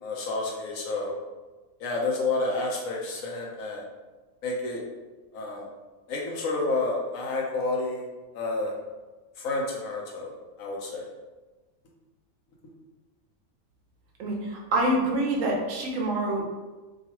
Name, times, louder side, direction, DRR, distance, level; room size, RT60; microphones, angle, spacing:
voice 1, 0.0-1.1 1.8-3.8 4.4-4.8 5.3-5.7 6.1-8.0 8.3-8.7 9.4-11.1, left 3 dB, 90° left, -2 dB, 1.1 m, -30 dB
voice 2, 14.2-16.4, right 1 dB, 80° right, -1 dB, 1.0 m, -26 dB
3.0 x 2.4 x 2.8 m, 1.2 s
omnidirectional pair, 1.4 m